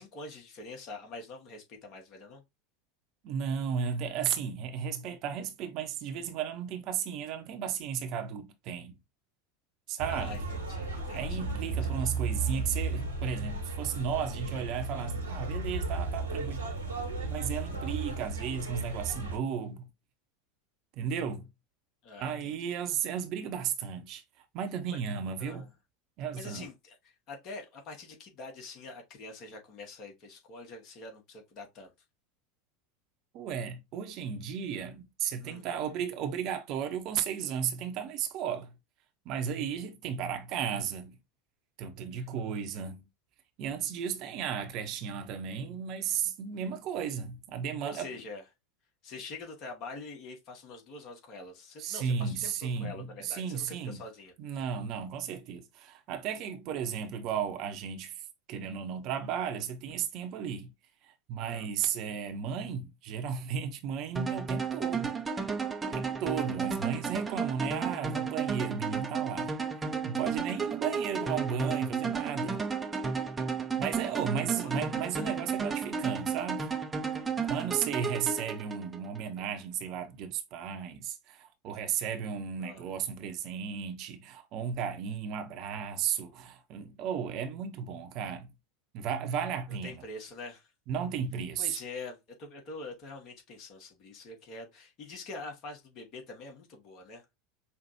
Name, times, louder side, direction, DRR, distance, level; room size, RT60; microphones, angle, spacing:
voice 1, 0.0-2.4 10.1-12.1 17.2-17.3 17.7-17.9 22.0-22.7 24.9-25.0 25.4-25.6 26.3-27.0 27.3-31.9 35.4-35.8 47.8-48.4 49.0-54.3 61.5-61.7 74.4-74.7 82.6-82.8 89.7-90.7 91.6-97.4, left 3 dB, 45° left, 1.7 m, -45 dB
voice 2, 3.2-9.0 9.9-10.4 11.1-16.7 17.3-19.9 21.0-21.5 22.2-24.2 24.5-25.7 26.2-26.7 33.3-38.8 39.2-41.2 41.8-43.1 43.6-48.1 51.8-54.0 54.4-58.2 58.5-60.7 61.3-65.2 65.9-69.5 70.0-72.6 73.8-76.7 77.4-88.5 88.9-90.0 90.9-91.8, right 7 dB, 50° right, 0.9 m, -34 dB
sound 1, 10.0-19.4, right 3 dB, 90° right, 1.5 m, -34 dB
sound 2, 64.2-79.2, right 5 dB, 20° right, 0.7 m, -33 dB
5.7 x 2.5 x 2.8 m
figure-of-eight pair, 80°, 0 cm